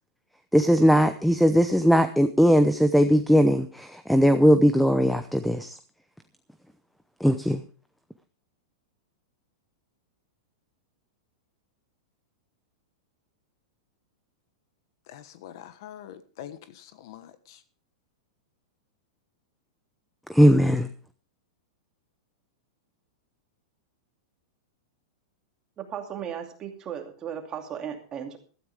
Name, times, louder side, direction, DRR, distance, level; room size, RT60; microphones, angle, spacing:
voice 1, 0.5-5.8 7.2-7.6 20.3-20.9, equal, ahead, 10 dB, 0.7 m, -19 dB
voice 2, 15.1-17.6, left 10 dB, 55° left, 12 dB, 1.3 m, -45 dB
voice 3, 25.8-28.4, right 8 dB, 25° right, 4 dB, 2.6 m, -36 dB
15.5 x 13.0 x 3.5 m, 0.39 s
supercardioid pair, 145°, 3 cm